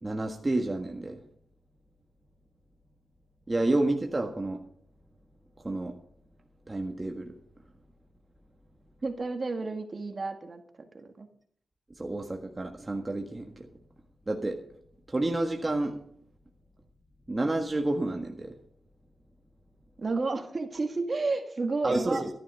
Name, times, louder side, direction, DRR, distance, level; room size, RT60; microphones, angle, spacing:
voice 1, 0.0-1.2 3.5-4.6 5.6-5.9 6.7-7.3 11.9-13.7 14.3-14.6 15.1-16.0 17.3-18.5 21.8-22.3, right 2 dB, 25° right, 2 dB, 1.5 m, -29 dB
voice 2, 9.0-10.6 10.9-11.3 20.0-22.2, right 3 dB, 40° right, 6 dB, 1.9 m, -31 dB
12.5 x 11.5 x 5.6 m, 0.62 s
cardioid pair, 80°, 0 cm